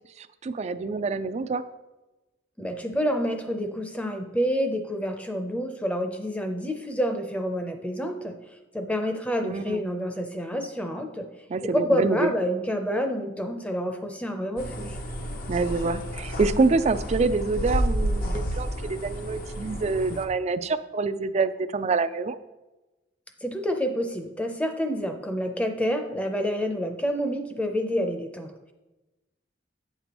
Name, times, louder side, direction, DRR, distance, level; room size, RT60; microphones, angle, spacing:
voice 1, 0.2-1.6 9.4-9.8 11.5-12.3 15.5-22.4, right 3 dB, 40° right, 11 dB, 0.4 m, -26 dB
voice 2, 2.6-8.3 8.7-11.3 11.6-15.0 23.4-28.5, equal, 5° left, 5 dB, 0.6 m, -28 dB
sound 1, 14.6-20.3, equal, 50° left, 0.8 m, -30 dB
8.8 x 6.8 x 3.0 m, 1.1 s
head